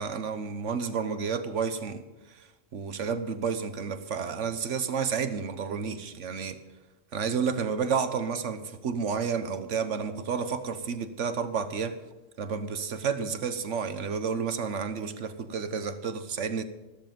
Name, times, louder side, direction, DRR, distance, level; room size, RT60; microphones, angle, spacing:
voice 1, 0.0-2.0 2.3-6.6 7.1-12.0 12.4-16.6, right 6 dB, 70° right, 1.4 m, -31 dB
13.5 x 13.5 x 5.4 m
omnidirectional pair, 1.3 m